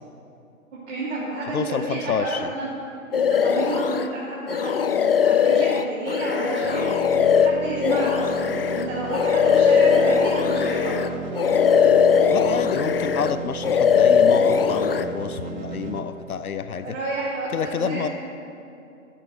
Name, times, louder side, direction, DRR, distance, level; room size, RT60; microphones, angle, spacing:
voice 1, 0.7-2.7 3.1-7.0 7.4-11.1 16.7-18.1, right 2 dB, 55° right, -8 dB, 2.8 m, -30 dB
voice 2, 1.5-2.5 12.3-17.0 17.5-18.1, left 6 dB, 85° left, 11 dB, 0.6 m, -28 dB
sound 1, 3.1-4.1 4.5-11.1 11.4-13.4 13.6-15.0, left 7 dB, 45° left, 0.4 m, -20 dB
sound 2, 6.6-16.0, right 5 dB, 35° right, 0.9 m, -35 dB
12.5 x 6.0 x 7.8 m, 2.7 s
figure-of-eight pair, 125°, 42 cm